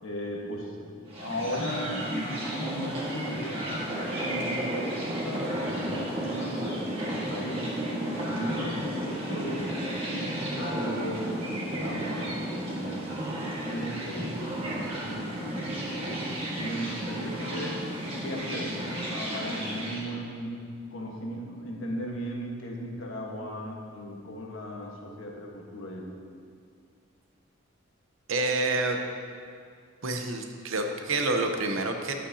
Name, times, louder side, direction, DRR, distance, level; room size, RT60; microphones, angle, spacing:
voice 1, 0.0-3.7 4.2-7.8 8.3-9.7 10.0-16.1 16.5-17.8 18.2-20.5 20.9-26.0, equal, 85° left, -1 dB, 1.3 m, -37 dB
sound 1, 1.1-20.0, right 1 dB, 30° right, 1.5 m, -33 dB
voice 2, 28.3-29.0 30.0-32.1, right 2 dB, 90° right, 4 dB, 0.8 m, -28 dB
11.0 x 8.2 x 2.8 m, 2.3 s
head